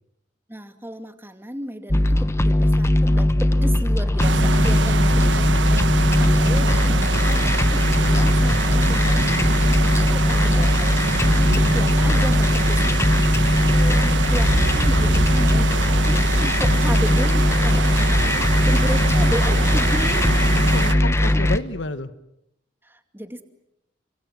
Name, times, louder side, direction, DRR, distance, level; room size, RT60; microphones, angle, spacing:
voice 1, 0.5-5.9 6.2-20.3 21.2-21.4 22.8-23.4, equal, 10° right, 7 dB, 2.5 m, -34 dB
sound 1, 1.9-21.6, left 1 dB, 15° left, 1.1 m, -19 dB
sound 2, 4.2-20.9, right 3 dB, 80° right, 1.3 m, -25 dB
voice 2, 4.6-5.4 13.6-14.3 19.3-19.6 20.6-22.1, left 2 dB, 85° left, 12 dB, 1.5 m, -32 dB
30.0 x 25.5 x 7.7 m, 0.82 s
head